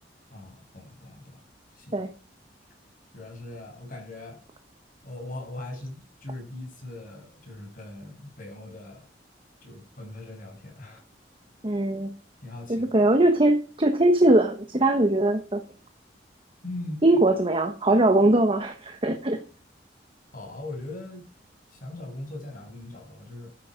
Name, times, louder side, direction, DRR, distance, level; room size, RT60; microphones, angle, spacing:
voice 1, 0.3-1.4 1.7-1.9 3.1-4.4 5.0-9.1 9.6-11.0 12.4-12.9 16.6-17.1 17.3-17.4 20.3-21.3 21.7-23.5, left 2 dB, 50° left, 2 dB, 7.0 m, -40 dB
voice 2, 11.6-12.1 12.7-15.6 17.0-19.4, right 1 dB, 30° right, 6 dB, 1.2 m, -21 dB
12.5 x 9.8 x 5.1 m, 0.37 s
head